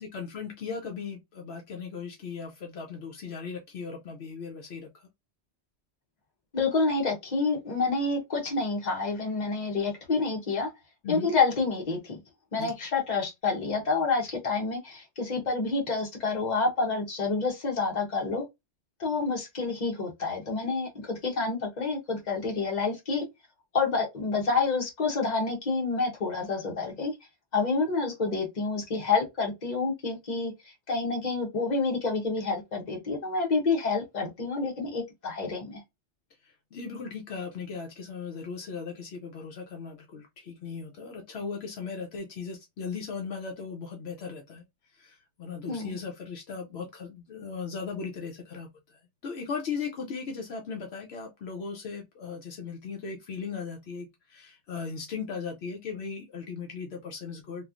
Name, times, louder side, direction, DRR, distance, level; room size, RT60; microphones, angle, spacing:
voice 1, 0.0-5.1 11.0-11.3 12.6-12.7 36.4-44.6 44.9-48.7 49.2-57.6, left 5 dB, 75° left, 0.9 m, -37 dB
voice 2, 6.5-10.7 11.1-12.2 12.5-18.4 19.0-23.3 23.7-27.1 27.5-30.5 30.9-35.8 45.7-46.0, left 4 dB, 40° left, 1.0 m, -28 dB
3.0 x 2.4 x 2.4 m
omnidirectional pair, 1.1 m